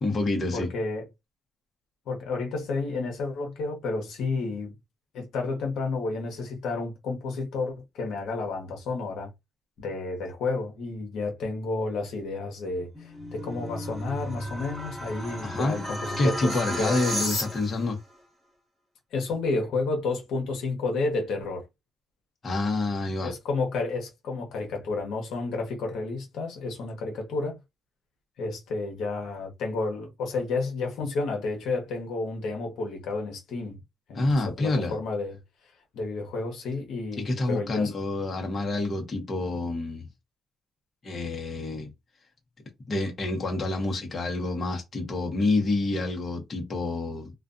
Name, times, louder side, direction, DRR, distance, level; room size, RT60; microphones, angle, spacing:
voice 1, 0.0-0.7 15.4-15.8 16.2-18.0 22.4-23.3 34.1-34.9 37.2-40.1 41.0-41.9 42.9-47.3, left 2 dB, 40° left, 0.9 m, -28 dB
voice 2, 0.5-1.1 2.1-4.7 5.1-9.3 9.8-17.0 19.1-21.7 23.2-27.6 28.4-33.8 34.1-35.4 35.9-37.9, left 3 dB, 80° left, 0.9 m, -31 dB
sound 1, 12.7-17.9, equal, 5° right, 1.3 m, -33 dB
2.4 x 2.3 x 2.5 m
cardioid pair, 90°, 0 cm